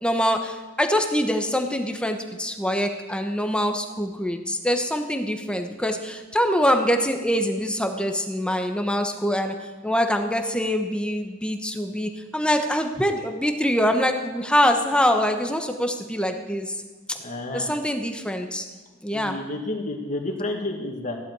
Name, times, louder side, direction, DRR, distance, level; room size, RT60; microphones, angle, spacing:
voice 1, 0.0-9.5 9.8-16.7 17.1-17.2 17.5-18.6 19.0-19.4, equal, 5° left, 5 dB, 1.1 m, -24 dB
voice 2, 17.2-17.7 19.1-21.2, left 2 dB, 35° left, 1 dB, 2.1 m, -30 dB
15.5 x 11.0 x 4.8 m, 1.2 s
head